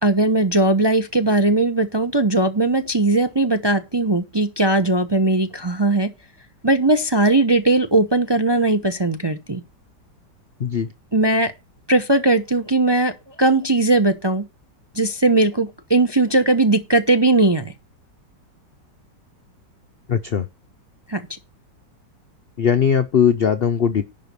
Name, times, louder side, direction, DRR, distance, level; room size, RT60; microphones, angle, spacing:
voice 1, 0.0-6.1 6.6-9.6 11.1-11.5 11.9-13.1 13.4-14.4 14.9-17.7 21.1-21.2, right 2 dB, 25° right, 0.5 m, -18 dB
voice 2, 20.1-20.5 22.6-24.0, left 7 dB, 75° left, 0.5 m, -19 dB
11.0 x 5.0 x 6.7 m
omnidirectional pair, 1.9 m